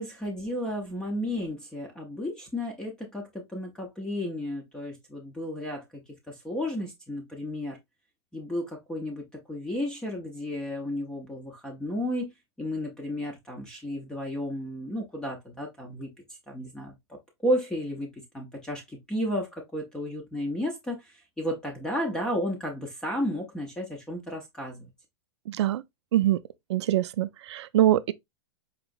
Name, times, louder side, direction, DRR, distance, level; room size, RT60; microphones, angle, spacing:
voice 1, 0.0-6.0 6.3-7.8 8.3-12.3 12.6-16.1 16.5-24.9, equal, 5° left, 0.5 m, -33 dB
voice 2, 25.5-25.8 26.1-26.4 26.7-28.1, right 13 dB, 80° right, 0.4 m, -24 dB
4.7 x 3.0 x 2.4 m
supercardioid pair, 165°, 14 cm